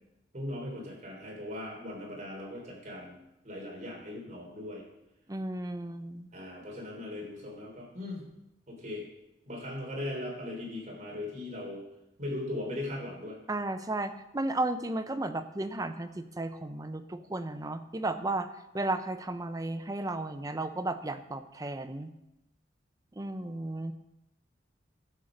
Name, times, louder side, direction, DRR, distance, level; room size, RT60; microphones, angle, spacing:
voice 1, 0.3-3.2 3.4-4.8 6.3-8.3 8.7-9.0 9.5-11.8 12.2-13.4, left 1 dB, 40° right, -2 dB, 3.7 m, -39 dB
voice 2, 5.3-6.3 13.5-18.5 18.7-22.1 23.2-23.9, right 2 dB, 20° right, 9 dB, 0.6 m, -34 dB
12.0 x 7.4 x 5.2 m, 0.90 s
head